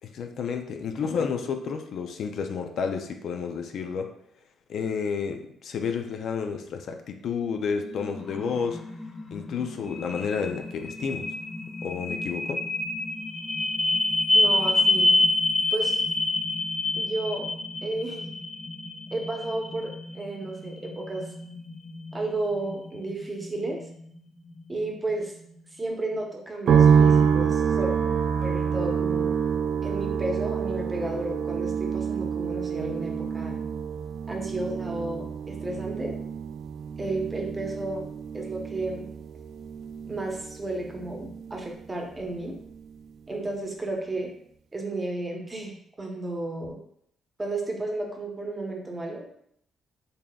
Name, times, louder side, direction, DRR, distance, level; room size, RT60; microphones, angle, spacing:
voice 1, 0.0-4.1 4.7-8.8 9.3-11.3 11.8-12.6, left 6 dB, 65° left, 5 dB, 0.4 m, -31 dB
sound 1, 7.5-25.5, left 2 dB, 20° left, 0.6 m, -28 dB
voice 2, 14.3-15.2 15.7-16.0 16.9-17.5 17.8-18.3 19.1-21.3 22.1-23.8 24.7-25.3 25.7-27.9 28.4-29.3 29.8-33.6 34.3-36.2 37.0-38.1 38.3-39.1 40.1-42.6 43.3-44.3 44.7-46.8 47.4-49.3, right 2 dB, 20° right, 1 dB, 0.8 m, -32 dB
sound 2, 26.7-41.9 42.2-43.0, right 7 dB, 65° right, 0.3 m, -26 dB
4.0 x 3.5 x 2.3 m, 0.70 s
cardioid pair, 90°, 0 cm